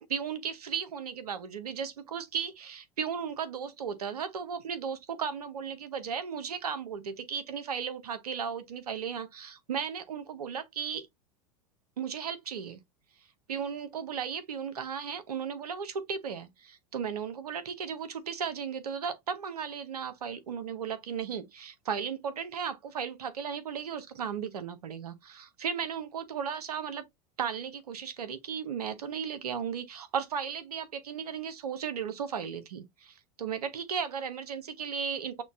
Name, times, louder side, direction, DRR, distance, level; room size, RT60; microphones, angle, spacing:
voice 1, 0.1-11.1 12.0-12.8 13.5-27.0 27.4-35.4, right 7 dB, 85° right, 0.7 m, -35 dB
6.0 x 2.2 x 2.3 m
hypercardioid pair, 85°, 19 cm